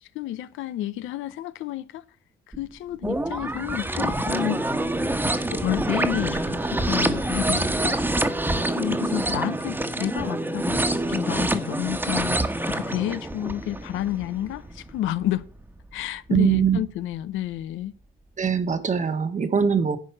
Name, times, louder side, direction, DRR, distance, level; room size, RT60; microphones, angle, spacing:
voice 1, 0.0-2.0 2.6-4.7 5.5-8.0 8.7-15.4 15.9-17.9, left 13 dB, 90° left, 0.7 m, -30 dB
sound 1, 2.5-2.6 3.0-15.4 16.0-16.1, right 1 dB, 10° right, 1.3 m, -26 dB
voice 2, 16.3-16.8 18.4-20.0, right 7 dB, 40° right, 1.4 m, -22 dB
10.5 x 4.7 x 7.4 m
cardioid pair, 90°, 20 cm